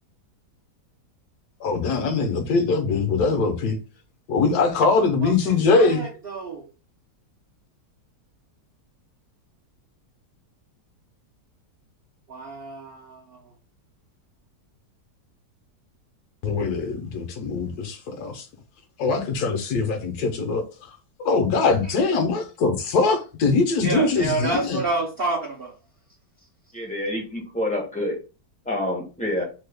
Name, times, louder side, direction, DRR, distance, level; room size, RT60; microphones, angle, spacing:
voice 1, 1.6-3.8 4.3-6.0 16.4-18.4 19.0-20.6 21.2-24.8, left 4 dB, 75° left, 1.2 m, -22 dB
voice 2, 4.7-6.6 12.3-13.4 23.8-25.7, right 2 dB, 60° right, 0.6 m, -29 dB
voice 3, 26.7-28.2 28.7-29.4, left 1 dB, 10° left, 0.4 m, -27 dB
3.1 x 2.2 x 3.3 m
omnidirectional pair, 1.8 m